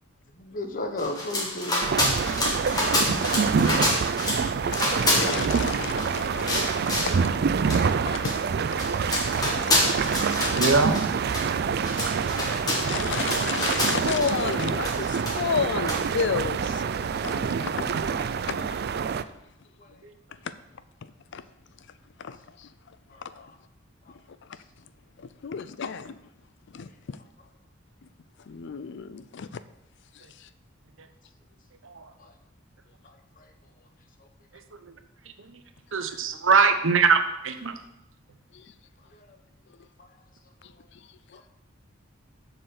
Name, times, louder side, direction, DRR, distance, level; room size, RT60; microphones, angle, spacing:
voice 1, 0.4-2.1 23.1-23.2 41.3-41.4, left 2 dB, 40° left, 6 dB, 1.1 m, -33 dB
sound 1, 1.0-4.4 4.7-6.1 6.5-7.2 7.7-7.8 8.2-8.4 8.7-11.1 11.3-11.5 11.7-14.3 14.8-15.6 15.9-16.0, left 1 dB, 20° left, 1.9 m, -27 dB
sound 2, 1.8-19.2, right 6 dB, 50° right, 0.4 m, -26 dB
voice 2, 3.0-3.3 4.6-8.3 8.7-8.9 9.1-10.7 12.4-16.8 17.2-18.8 20.4-20.5 21.3-21.4 22.2-22.7 23.2-23.5 25.2-26.2 26.7-27.2 28.5-29.6 30.1-30.5 38.5-38.7 40.6-41.0, left 6 dB, 60° left, 14 dB, 0.4 m, -33 dB
voice 3, 9.1-9.6 10.5-11.0 31.8-32.1 34.9-35.0 35.4-35.5 35.9-37.7, right 4 dB, 70° right, 8 dB, 0.9 m, -23 dB
7.6 x 6.7 x 6.5 m, 0.86 s
head